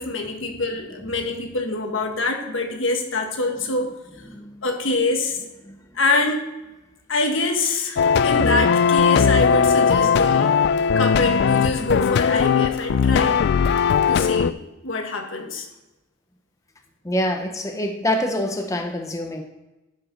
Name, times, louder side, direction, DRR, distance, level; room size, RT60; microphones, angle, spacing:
voice 1, 0.0-3.9 4.6-5.4 5.9-6.5 7.1-10.6 10.9-13.4 14.1-15.7, left 2 dB, 75° left, 3 dB, 1.5 m, -25 dB
voice 2, 4.3-4.6 5.6-5.8 10.4-10.5 17.0-19.4, left 1 dB, 15° left, 4 dB, 0.7 m, -26 dB
sound 1, 8.0-14.5, left 6 dB, 55° left, 0.3 m, -18 dB
11.5 x 5.3 x 5.1 m, 1.0 s
head